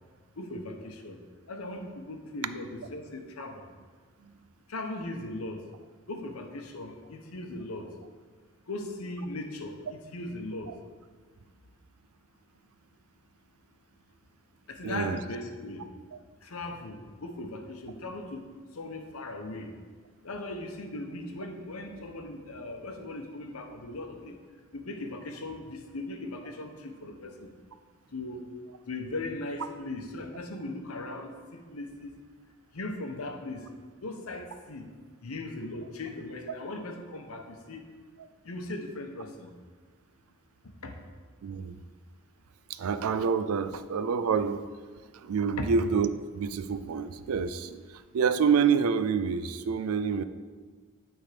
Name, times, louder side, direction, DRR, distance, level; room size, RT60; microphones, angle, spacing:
voice 1, 0.4-1.2 1.5-3.7 4.7-5.6 6.1-7.9 8.7-10.7 14.7-15.9 16.4-18.5 18.7-19.7 20.2-24.3 24.7-27.5 28.1-28.4 28.9-32.1 32.7-33.7 34.0-34.9 35.2-37.8 38.4-39.5 40.8-40.9 45.6-45.7, left 2 dB, 90° left, 4 dB, 0.9 m, -38 dB
voice 2, 14.8-15.2 41.4-41.8 42.7-44.7 45.1-50.2, right 6 dB, 90° right, 12 dB, 0.4 m, -27 dB
9.5 x 3.6 x 4.9 m, 1.5 s
head